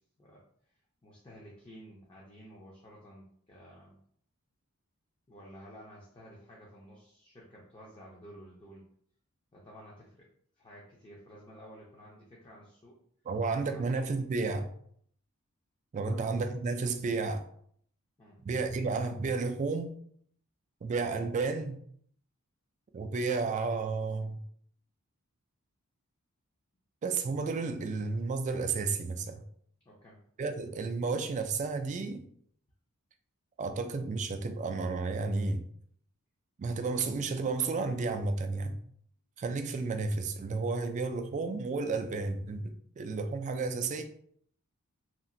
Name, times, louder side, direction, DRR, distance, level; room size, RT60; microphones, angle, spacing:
voice 1, 0.7-4.0 5.3-8.9 9.5-10.3 10.6-13.0 13.6-13.9 16.0-16.2 18.2-18.4 29.8-30.2, equal, 25° left, -4 dB, 0.5 m, -52 dB
voice 2, 13.3-14.7 15.9-17.5 18.4-19.9 20.8-21.8 22.9-24.4 27.0-29.4 30.4-32.3 33.6-35.6 36.6-38.8 39.4-44.0, right 4 dB, 35° right, 7 dB, 0.3 m, -32 dB
2.9 x 2.5 x 2.5 m, 0.63 s
head